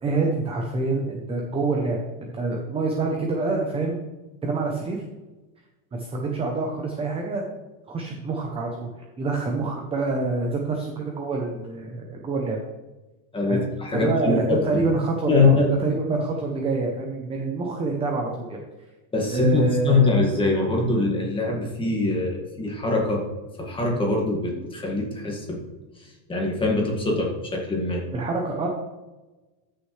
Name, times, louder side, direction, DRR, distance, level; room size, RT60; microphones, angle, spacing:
voice 1, 0.0-4.0 4.4-5.0 6.0-7.4 7.9-8.9 9.2-12.6 13.5-13.6 13.9-18.6 19.3-20.2 28.1-28.7, right 3 dB, 10° right, 1 dB, 0.6 m, -26 dB
voice 2, 13.3-14.8 15.3-15.9 19.1-23.3 23.6-25.6 26.3-28.0, left 2 dB, 10° left, -1 dB, 1.8 m, -23 dB
14.0 x 6.5 x 3.2 m, 1.1 s
supercardioid pair, 170°, 49 cm